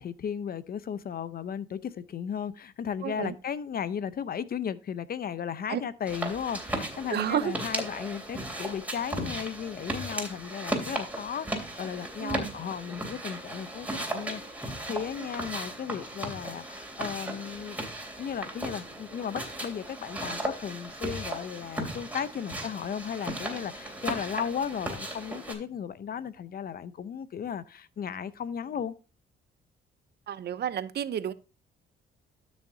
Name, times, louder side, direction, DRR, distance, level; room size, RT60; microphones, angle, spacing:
voice 1, 0.0-17.8 18.2-28.9, left 8 dB, 50° left, 0.7 m, -35 dB
voice 2, 3.0-3.3 5.7-5.8 7.1-7.5 12.2-12.5 15.2-15.3 30.3-31.3, right 9 dB, 55° right, 0.7 m, -31 dB
sound 1, 6.1-25.5, right 1 dB, 10° right, 3.0 m, -36 dB
12.5 x 6.3 x 2.7 m
cardioid pair, 90°, 20 cm